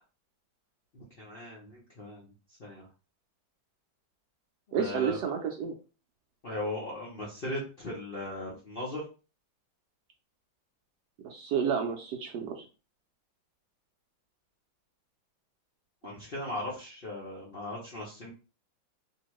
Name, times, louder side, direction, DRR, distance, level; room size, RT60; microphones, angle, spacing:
voice 1, 0.9-2.3 2.6-2.9 4.8-5.2 6.4-9.0 16.0-18.3, left 1 dB, 80° left, -5 dB, 0.5 m, -38 dB
voice 2, 4.7-5.7 11.2-12.6, right 7 dB, 75° right, 3 dB, 1.0 m, -30 dB
2.9 x 2.7 x 3.0 m, 0.33 s
omnidirectional pair, 2.2 m